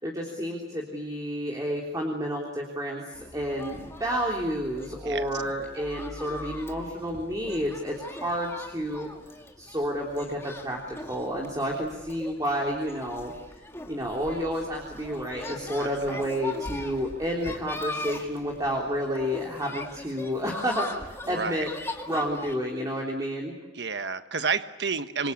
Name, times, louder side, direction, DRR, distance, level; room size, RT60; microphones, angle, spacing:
voice 1, 0.0-9.1 9.6-13.3 13.9-21.7 22.1-23.5, equal, 20° right, -1 dB, 3.5 m, -30 dB
sound 1, 3.1-22.6, left 2 dB, 15° left, 2.2 m, -40 dB
voice 2, 15.8-16.2 21.3-21.7 23.7-25.3, right 5 dB, 65° right, 10 dB, 1.3 m, -30 dB
27.0 x 23.5 x 8.6 m, 1.0 s
head